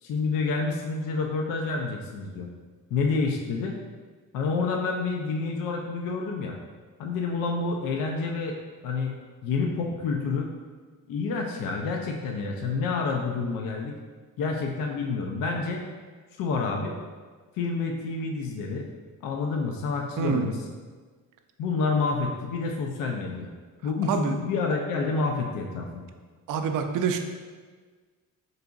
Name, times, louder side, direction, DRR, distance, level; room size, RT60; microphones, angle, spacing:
voice 1, 0.0-2.5 2.9-3.8 4.3-6.6 7.0-8.6 8.8-9.2 9.4-10.5 11.1-14.0 14.4-15.9 16.4-17.0 17.6-18.9 19.2-20.6 21.6-23.5 23.8-26.0, left 4 dB, 75° left, 1 dB, 0.5 m, -28 dB
voice 2, 20.2-20.5 24.1-24.4 26.5-27.2, right 6 dB, 65° right, 6 dB, 0.5 m, -26 dB
4.8 x 3.8 x 2.3 m, 1.5 s
cardioid pair, 170°, 34 cm